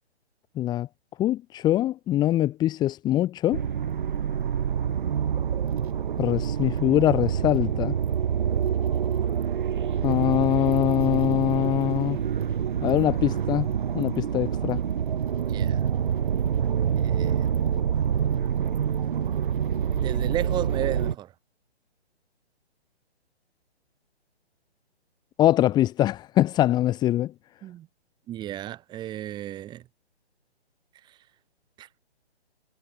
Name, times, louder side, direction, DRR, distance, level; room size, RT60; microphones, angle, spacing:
voice 1, 0.6-0.9 1.2-3.6 6.2-8.0 10.0-12.2 12.8-13.7 13.9-14.8 25.4-27.3, left 13 dB, 10° left, 2.8 m, -23 dB
sound 1, 3.5-21.1, right 8 dB, 50° right, 4.6 m, -26 dB
voice 2, 15.4-15.9 17.0-17.5 19.9-21.3 27.6-27.9 28.3-29.9 31.1-31.2 31.8-31.9, right 13 dB, 15° right, 5.6 m, -34 dB
hypercardioid pair, 155°, 33 cm